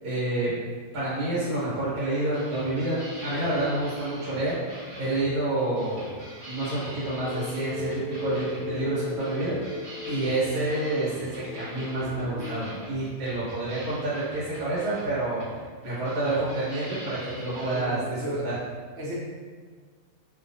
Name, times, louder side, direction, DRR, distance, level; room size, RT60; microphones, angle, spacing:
voice 1, 0.0-0.5 0.9-4.6 5.0-6.1 6.5-7.9 8.2-9.5 10.1-15.4 15.8-18.2 18.4-18.5, right 2 dB, 90° right, -9 dB, 1.4 m, -28 dB
sound 1, 2.1-17.8, equal, 30° right, 0.7 m, -44 dB
sound 2, 7.0-12.9, left 3 dB, 70° left, 0.9 m, -37 dB
voice 2, 17.5-18.6 18.9-19.2, right 1 dB, 60° right, -5 dB, 0.7 m, -34 dB
2.8 x 2.2 x 2.6 m, 1.5 s
omnidirectional pair, 1.6 m